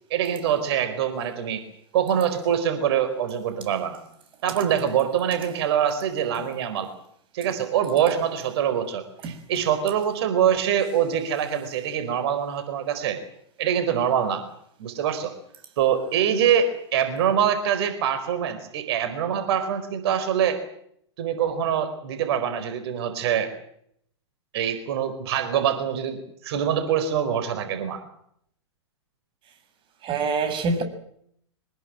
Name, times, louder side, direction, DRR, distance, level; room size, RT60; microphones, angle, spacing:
voice 1, 0.1-1.6 1.9-4.0 4.4-6.9 7.3-13.2 13.6-14.4 14.8-15.3 15.8-20.6 21.2-23.5 24.5-28.0, right 9 dB, 60° right, 4.6 m, -24 dB
voice 2, 30.0-30.8, right 4 dB, 35° right, 6.8 m, -25 dB
24.5 x 20.5 x 7.8 m
hypercardioid pair, 105°, 15 cm